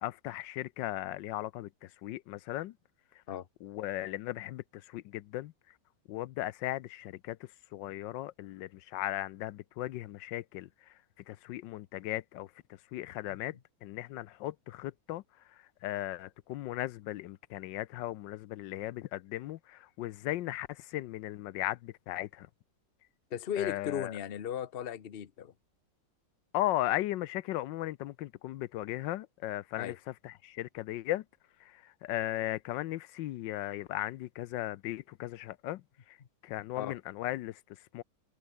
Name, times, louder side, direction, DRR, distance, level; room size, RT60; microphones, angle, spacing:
voice 1, 0.0-2.7 3.6-5.5 6.1-10.9 11.3-12.5 12.9-15.2 15.5-22.5 23.6-24.1 26.5-29.9 30.2-31.2 31.6-35.8 36.1-36.2 36.4-38.0, left 15 dB, 85° left, 1.3 m, -37 dB
voice 2, 23.3-25.5 29.8-30.0 36.8-37.0, left 9 dB, 40° left, 0.9 m, -36 dB
omnidirectional pair, 2.0 m